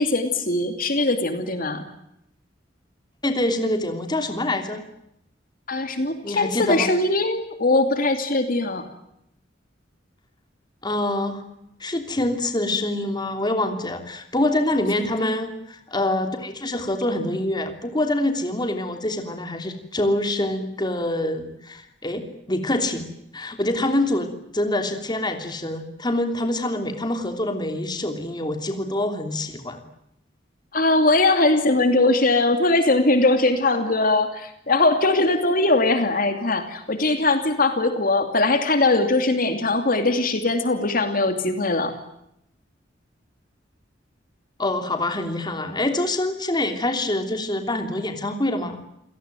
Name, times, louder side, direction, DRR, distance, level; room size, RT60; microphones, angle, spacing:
voice 1, 0.0-1.9 5.7-8.8 15.0-15.1 30.7-41.9, left 2 dB, 50° left, 7 dB, 2.7 m, -21 dB
voice 2, 3.2-4.8 6.2-6.9 10.8-11.4 11.8-23.1 23.3-24.3 24.5-29.8 44.6-48.8, left 1 dB, 25° left, 6 dB, 3.1 m, -25 dB
28.5 x 18.0 x 9.1 m, 0.79 s
head